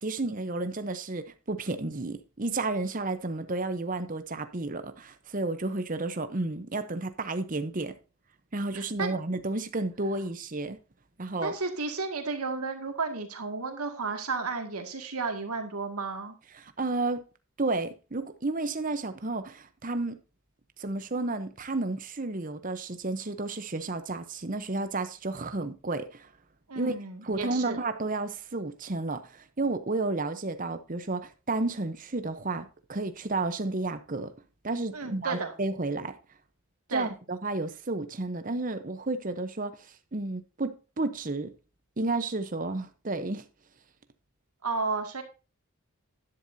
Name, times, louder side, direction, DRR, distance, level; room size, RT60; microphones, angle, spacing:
voice 1, 0.0-7.9 8.5-10.8 11.2-11.5 16.5-17.2 17.6-20.2 20.8-26.3 26.7-26.9 27.2-34.3 34.6-36.1 36.9-39.8 40.1-41.5 42.0-43.4, right 2 dB, 35° right, 0.8 m, -32 dB
voice 2, 8.7-9.2 11.4-16.3 26.7-27.8 34.9-35.5 36.9-37.1 44.6-45.2, right 4 dB, 85° right, 2.2 m, -33 dB
11.5 x 10.5 x 2.7 m
head